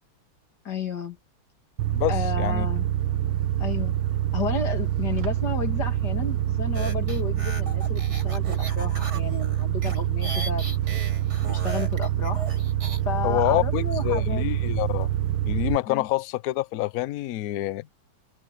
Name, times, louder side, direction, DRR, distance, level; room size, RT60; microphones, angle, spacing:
voice 1, 0.6-1.2 2.1-2.9 3.6-3.9 4.3-10.8 11.4-12.5 13.1-14.4 15.9-16.1, left 5 dB, 55° left, 2.7 m, -32 dB
sound 1, 1.8-15.8, right 12 dB, 80° right, 1.6 m, -26 dB
voice 2, 1.9-2.7 13.2-15.1 15.5-17.9, left 16 dB, 80° left, 0.8 m, -27 dB
sound 2, 6.7-13.0, right 2 dB, 50° right, 6.9 m, -37 dB
omnidirectional pair, 2.2 m